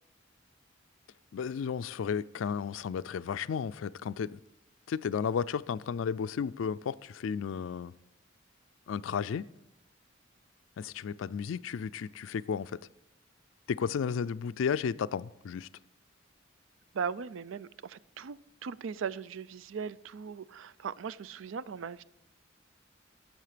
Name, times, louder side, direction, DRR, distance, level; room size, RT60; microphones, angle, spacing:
voice 1, 1.3-4.4 4.9-7.9 8.9-9.5 10.8-12.8 13.7-15.7, left 6 dB, 85° left, 0.4 m, -33 dB
voice 2, 16.9-22.0, right 6 dB, 85° right, 0.4 m, -38 dB
16.5 x 7.3 x 5.0 m
head